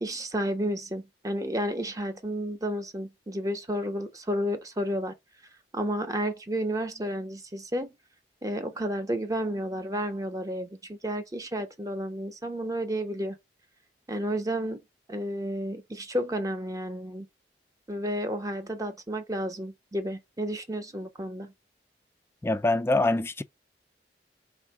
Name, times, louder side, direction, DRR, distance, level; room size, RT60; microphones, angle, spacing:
voice 1, 0.0-5.2 5.7-8.0 8.4-13.4 14.1-14.8 15.1-17.3 17.9-21.5, equal, 20° right, 0.7 m, -31 dB
voice 2, 22.4-23.4, left 2 dB, 15° left, 0.3 m, -24 dB
3.5 x 2.5 x 4.6 m
head